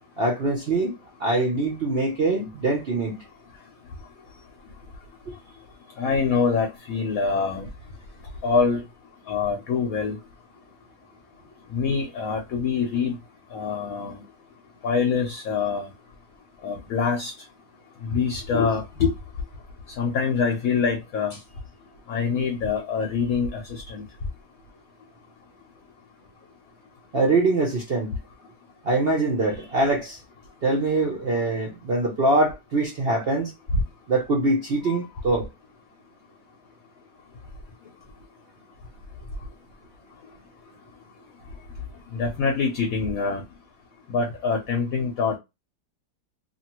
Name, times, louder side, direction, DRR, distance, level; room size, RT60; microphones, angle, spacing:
voice 1, 0.2-0.9 1.2-3.2 5.3-5.4 27.1-28.2 28.8-30.2 30.6-33.5 34.1-35.5, right 2 dB, 65° right, 0.6 m, -23 dB
voice 2, 6.0-7.7 8.4-8.8 9.3-10.2 11.7-13.1 13.5-14.2 14.8-15.9 16.6-17.3 18.0-19.1 20.0-21.4 22.1-24.0 42.1-43.4 44.1-45.4, left 5 dB, 65° left, 1.0 m, -25 dB
2.8 x 2.6 x 2.9 m
omnidirectional pair, 1.9 m